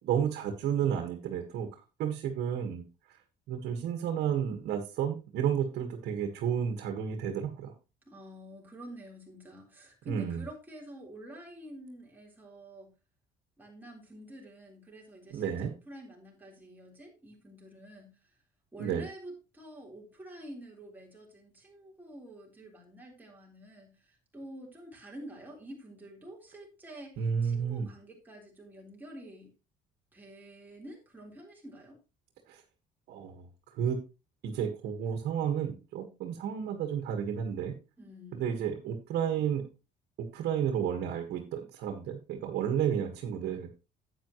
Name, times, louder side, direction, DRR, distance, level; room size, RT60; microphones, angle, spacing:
voice 1, 0.0-1.7 2.0-2.8 3.5-7.7 10.0-10.4 15.3-15.7 18.8-19.0 27.2-27.9 32.5-32.6 33.1-33.4 33.8-34.0 34.4-37.7 38.3-39.7 40.2-43.7, right 8 dB, 75° right, 4 dB, 1.6 m, -31 dB
voice 2, 8.1-12.9 13.6-18.4 18.7-29.5 30.1-32.0 38.0-38.5, right 1 dB, 10° right, -2 dB, 4.0 m, -48 dB
10.5 x 8.7 x 3.1 m, 0.30 s
cardioid pair, 110°, 17 cm